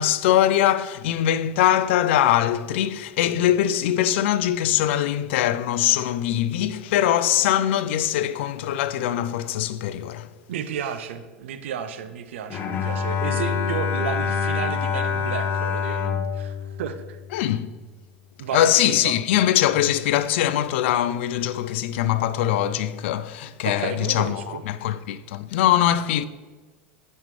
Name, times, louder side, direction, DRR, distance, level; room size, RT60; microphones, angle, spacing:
voice 1, 0.0-10.3 17.3-17.7 18.5-26.2, left 11 dB, 70° left, 0.4 m, -22 dB
voice 2, 10.5-17.2 18.4-19.1 23.6-24.6, right 8 dB, 80° right, 0.6 m, -32 dB
Bowed string instrument, 12.5-17.8, left 6 dB, 35° left, 0.9 m, -26 dB
9.1 x 5.2 x 3.2 m
hypercardioid pair, 100°, 7 cm